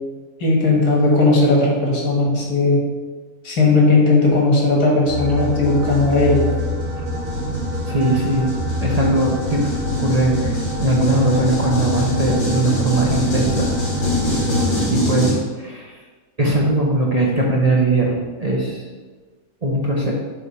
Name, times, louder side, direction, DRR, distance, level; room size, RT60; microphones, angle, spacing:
voice 1, 0.4-2.8 3.4-6.5, left 2 dB, 85° left, -2 dB, 2.1 m, -16 dB
sound 1, 5.1-15.3, left 1 dB, 70° left, 2.4 m, -25 dB
sound 2, 5.1-14.9, left 1 dB, 75° right, 1.6 m, -28 dB
voice 2, 7.9-8.5 8.8-9.7 10.0-13.7 14.9-15.9 16.4-18.8 19.6-20.1, right 2 dB, 35° right, -3 dB, 0.7 m, -20 dB
7.1 x 3.4 x 5.5 m, 1.3 s
omnidirectional pair, 1.6 m